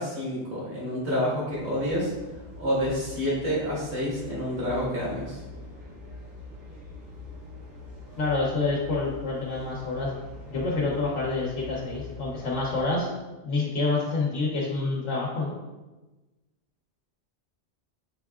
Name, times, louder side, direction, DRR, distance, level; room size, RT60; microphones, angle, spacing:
voice 1, 0.0-2.1 2.6-5.4, equal, 70° right, -6 dB, 1.9 m, -28 dB
sound 1, 1.5-12.9, left 3 dB, 45° right, 1.0 m, -44 dB
voice 2, 8.2-10.1 10.5-13.1 13.4-15.5, left 3 dB, 80° left, -4 dB, 1.1 m, -27 dB
5.5 x 3.6 x 2.4 m, 1.2 s
omnidirectional pair, 1.2 m